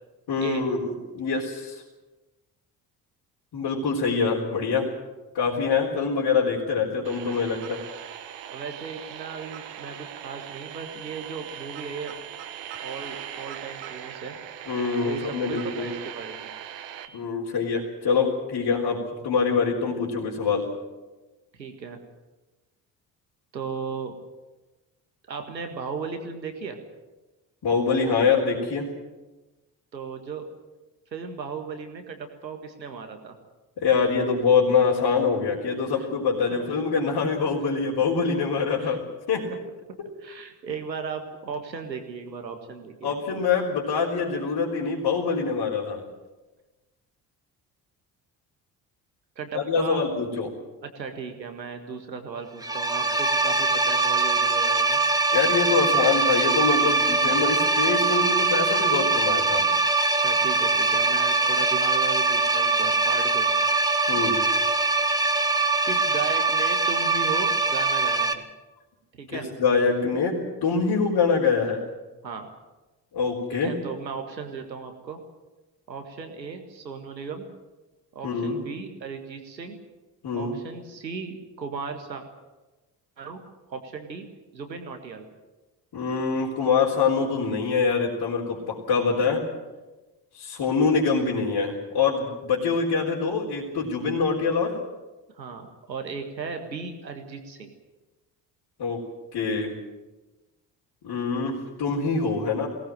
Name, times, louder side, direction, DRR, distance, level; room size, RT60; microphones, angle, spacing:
voice 1, 0.3-1.8 3.5-4.9 5.3-7.8 14.7-15.9 17.1-20.7 27.6-28.9 33.8-39.0 39.3-39.5 40.0-40.1 43.0-46.0 49.5-50.5 55.3-59.7 64.1-64.4 69.3-71.8 73.1-73.8 78.2-78.6 80.2-80.6 85.9-89.4 90.3-94.8 98.8-99.0 99.3-99.7 101.0-102.7, left 5 dB, 50° left, -5 dB, 4.0 m, -24 dB
sound 1, 7.0-17.1, right 10 dB, 60° right, 1.7 m, -40 dB
voice 2, 8.5-12.1 12.8-14.4 15.0-16.5 21.6-22.0 23.5-24.1 25.3-26.8 29.9-30.5 31.1-33.4 35.9-36.1 38.8-39.0 39.5-39.6 40.2-43.1 49.4-50.0 50.8-55.0 60.2-63.7 65.9-68.4 69.2-69.5 72.2-72.5 73.5-75.2 75.9-77.5 78.1-79.8 80.3-82.2 83.2-83.4 83.7-84.3 84.5-85.3 95.4-97.7, right 5 dB, 85° right, 6 dB, 1.9 m, -36 dB
sound 2, 52.6-68.3, right 3 dB, 5° right, 1.8 m, -22 dB
22.0 x 18.5 x 7.7 m, 1.1 s
figure-of-eight pair, 45°, 50 cm